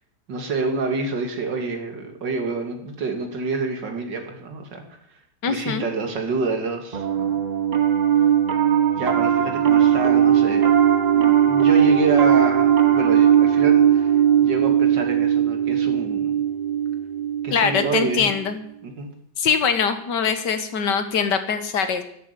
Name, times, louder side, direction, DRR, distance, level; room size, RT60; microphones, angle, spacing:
voice 1, 0.3-4.8 5.5-7.4 9.0-10.8 11.1-14.2 14.4-16.4 17.4-18.3 18.8-19.1, right 3 dB, 80° right, 4 dB, 2.8 m, -27 dB
voice 2, 5.4-5.9 17.5-18.6 19.4-22.0, left 6 dB, 70° left, 9 dB, 2.0 m, -22 dB
Piano, 6.9-18.4, right 9 dB, 45° right, 0.5 m, -18 dB
11.0 x 11.0 x 8.3 m, 0.72 s
omnidirectional pair, 1.9 m